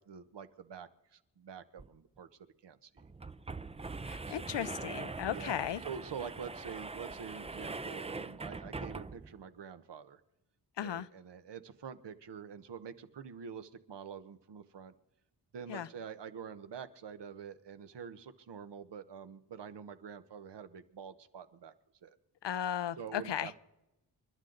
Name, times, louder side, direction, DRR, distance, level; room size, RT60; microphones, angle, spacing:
voice 1, 0.0-2.3 2.6-2.9 4.3-4.4 5.3-10.2 10.8-14.9 15.5-21.7 22.0-22.2 23.0-23.6, right 7 dB, 75° right, 11 dB, 1.1 m, -46 dB
sound 1, 1.8-1.9 2.2-2.3 3.0-9.4, right 3 dB, 15° right, 0.5 m, -42 dB
voice 2, 4.1-5.8 10.8-11.1 15.7-15.9 22.4-23.5, left 10 dB, 80° left, 16 dB, 0.7 m, -36 dB
29.5 x 11.5 x 3.9 m, 0.93 s
wide cardioid pair, 105°, 42 cm